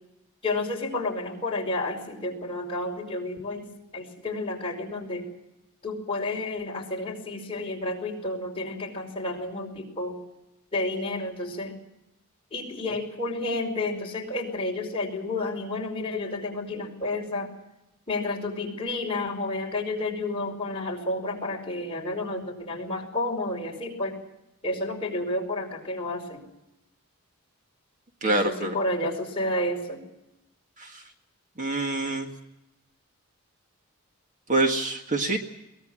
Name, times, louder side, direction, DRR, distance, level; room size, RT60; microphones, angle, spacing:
voice 1, 0.4-3.7 3.9-5.3 5.8-10.2 10.7-11.7 12.5-17.5 18.1-24.1 24.6-26.4 28.2-30.0, left 2 dB, 25° left, -1 dB, 5.1 m, -31 dB
voice 2, 28.2-28.8 30.8-30.9 31.6-32.3 34.5-35.4, right 2 dB, 35° right, 4 dB, 1.8 m, -25 dB
22.5 x 19.0 x 7.5 m, 0.91 s
head